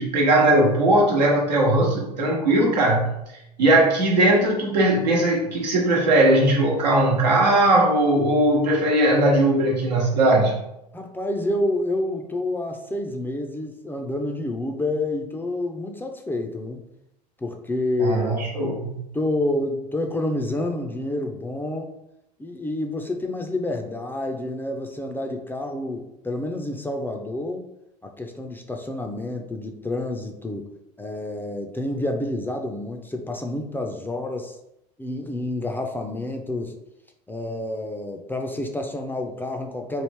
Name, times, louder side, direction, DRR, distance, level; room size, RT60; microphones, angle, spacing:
voice 1, 0.0-3.1 3.6-10.6 18.0-19.0, right 1 dB, 85° right, -2 dB, 1.0 m, -19 dB
voice 2, 10.9-16.8 17.4-18.4 19.1-21.9 22.4-27.6 28.0-30.7 31.0-34.6 35.0-36.7 37.3-40.0, left 1 dB, 10° left, 3 dB, 0.4 m, -28 dB
3.1 x 2.4 x 3.3 m, 0.85 s
hypercardioid pair, 85°, 21 cm